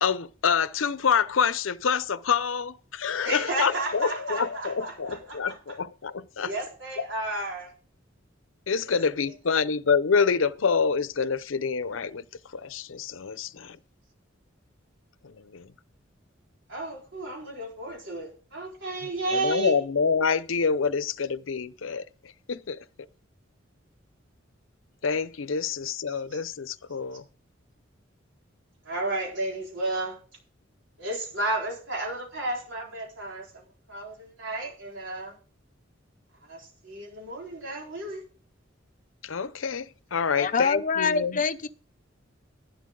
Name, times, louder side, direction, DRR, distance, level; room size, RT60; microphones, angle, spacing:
voice 1, 0.0-6.5 7.0-7.1 8.7-12.2 12.5-13.8 15.2-15.7 19.3-22.0 22.5-22.8 25.0-27.2 39.2-41.4, left 6 dB, 90° left, 0.6 m, -27 dB
voice 2, 3.2-5.8 6.4-7.7 9.3-9.4 16.7-19.8 26.3-26.4 28.8-30.2 31.0-35.3 36.5-38.2, right 2 dB, 70° right, 4.3 m, -33 dB
voice 3, 40.4-41.7, left 5 dB, 40° left, 0.7 m, -25 dB
11.5 x 11.5 x 3.7 m
head